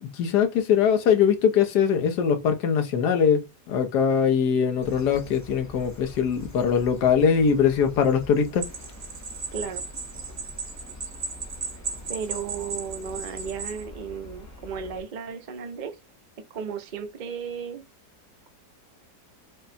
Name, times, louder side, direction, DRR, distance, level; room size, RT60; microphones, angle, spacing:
voice 1, 0.0-8.7, left 7 dB, 70° left, 1.4 m, -22 dB
sound 1, 4.8-15.0, left 1 dB, 20° left, 0.5 m, -45 dB
sound 2, 8.6-13.8, right 4 dB, 50° right, 1.1 m, -36 dB
voice 2, 9.5-9.8 12.1-16.0 16.5-17.8, right 6 dB, 70° right, 0.4 m, -34 dB
5.5 x 2.2 x 4.1 m
omnidirectional pair, 1.9 m